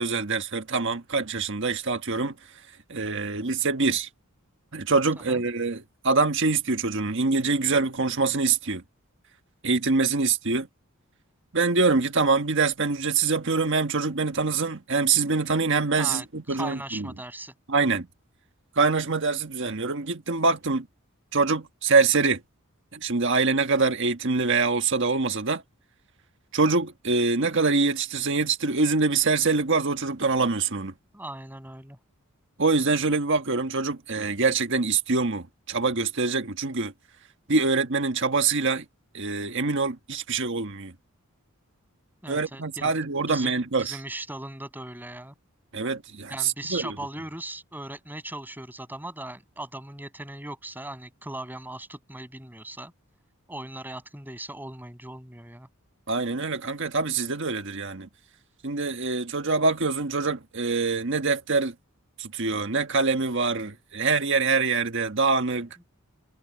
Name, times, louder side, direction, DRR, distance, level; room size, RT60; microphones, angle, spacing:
voice 1, 0.0-2.3 2.9-4.1 4.7-8.8 9.6-10.7 11.5-17.1 17.7-18.1 18.8-20.9 21.3-22.4 22.9-25.6 26.5-30.9 32.6-36.9 37.5-38.8 39.1-40.9 42.3-44.0 45.7-47.0 56.1-58.1 58.6-61.7 62.2-65.7, right 4 dB, 55° right, 1.5 m, -24 dB
voice 2, 16.0-17.5 31.1-32.0 42.2-42.9 43.3-45.3 46.3-52.9 53.5-55.7, right 1 dB, 10° right, 7.0 m, -38 dB
head